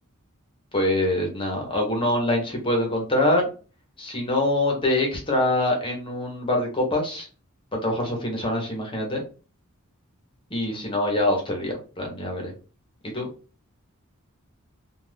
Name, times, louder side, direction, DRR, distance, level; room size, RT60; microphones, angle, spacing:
voice 1, 0.7-3.5 4.0-7.3 7.7-9.2 10.5-12.5 13.0-13.3, left 1 dB, 25° left, 1 dB, 0.9 m, -24 dB
2.5 x 2.4 x 3.3 m, 0.35 s
head